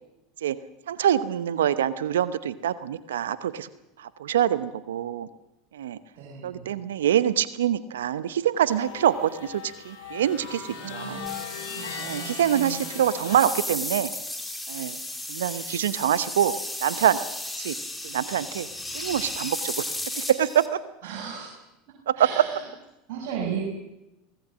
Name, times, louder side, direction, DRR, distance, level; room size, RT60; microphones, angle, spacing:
voice 1, 0.9-3.7 4.0-5.3 5.7-6.0 6.4-11.2 12.0-14.1 14.7-15.0 15.3-16.5 16.8-17.2 17.6-17.8 18.0-18.7 18.9-19.9 20.2-20.8 22.1-22.2, right 10 dB, 80° right, 15 dB, 0.9 m, -25 dB
voice 2, 6.2-6.7 10.8-11.4 11.7-13.0 21.0-21.5 21.9-22.6 23.1-23.6, right 7 dB, 60° right, -2 dB, 6.8 m, -36 dB
sound 1, 8.6-13.4, left 6 dB, 65° left, 6.6 m, -38 dB
sound 2, 11.3-20.7, left 1 dB, 5° left, 3.6 m, -35 dB
24.0 x 18.5 x 7.4 m, 0.91 s
hypercardioid pair, 85°, 0 cm